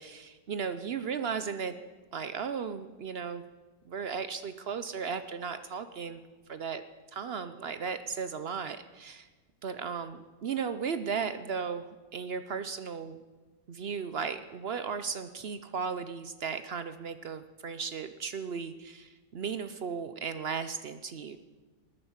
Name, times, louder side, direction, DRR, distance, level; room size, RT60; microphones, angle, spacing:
voice 1, 0.0-1.8 2.1-3.4 3.9-6.2 6.5-6.8 7.1-9.3 9.6-13.2 13.7-21.4, right 6 dB, 65° right, 11 dB, 0.6 m, -36 dB
20.0 x 9.6 x 7.3 m, 1.3 s
omnidirectional pair, 1.9 m